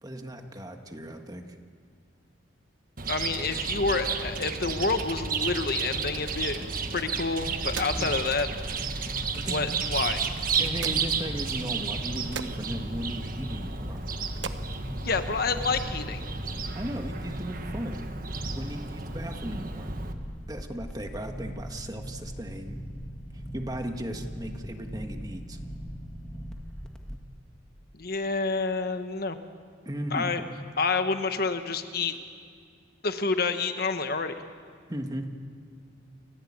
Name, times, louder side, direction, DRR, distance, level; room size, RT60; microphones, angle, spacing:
voice 1, 0.0-1.6 8.0-8.1 8.9-9.0 9.3-9.7 10.6-14.0 16.7-18.0 18.5-19.9 20.5-22.8 23.5-25.6 29.8-30.5 34.9-35.3, equal, 20° right, 5 dB, 1.6 m, -36 dB
Chirp tweet, 3.0-20.1, right 5 dB, 45° right, 1.4 m, -33 dB
voice 2, 3.1-6.6 6.9-8.5 9.5-10.2 15.0-16.2 27.9-29.4 30.1-30.4 30.8-32.1 33.0-34.3, left 4 dB, 50° left, 8 dB, 1.2 m, -28 dB
sound 1, 6.9-15.9, right 6 dB, 75° right, 1.1 m, -45 dB
sound 2, 7.4-27.2, equal, 5° left, 1.6 m, -40 dB
30.0 x 15.5 x 8.8 m, 2.2 s
head